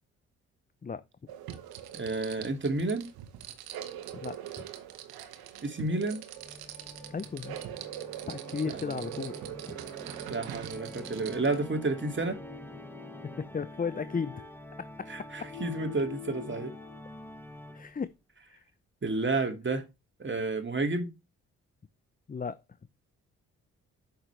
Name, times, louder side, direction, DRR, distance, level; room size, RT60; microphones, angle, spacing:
sound 1, 1.3-11.6, right 10 dB, 70° right, 1.3 m, -42 dB
voice 1, 1.9-3.1 5.6-6.2 8.9-9.0 10.3-12.4 15.1-16.7 19.0-19.8 20.2-21.1, right 3 dB, 30° right, 2.4 m, -31 dB
voice 2, 4.1-4.7 7.1-7.6 8.3-9.4 9.7-9.8 13.4-14.4 15.0-15.1 15.4-15.5 17.7-18.1 18.5-18.6 22.3-22.6, left 5 dB, 20° left, 0.7 m, -35 dB
Organ, 6.3-18.2, left 1 dB, 5° left, 1.5 m, -47 dB
sound 2, 11.7-17.0, left 13 dB, 65° left, 2.9 m, -47 dB
8.8 x 6.6 x 3.3 m
hypercardioid pair, 45°, 38 cm